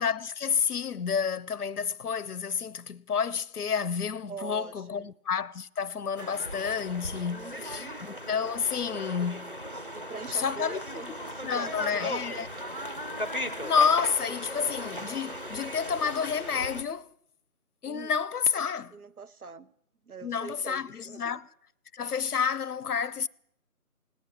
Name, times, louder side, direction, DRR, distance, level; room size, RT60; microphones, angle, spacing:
voice 1, 0.0-9.5 10.3-10.8 11.4-12.5 13.6-17.1 17.8-19.0 20.2-21.5 21.9-23.3, left 6 dB, 80° left, 0.7 m, -29 dB
voice 2, 4.3-5.1 7.3-8.0 9.9-12.8 17.8-18.1 18.9-19.7 20.1-21.4, right 5 dB, 70° right, 1.0 m, -43 dB
sound 1, 6.2-16.8, equal, 35° left, 0.6 m, -37 dB
18.0 x 9.3 x 8.3 m
figure-of-eight pair, 175°, 45 cm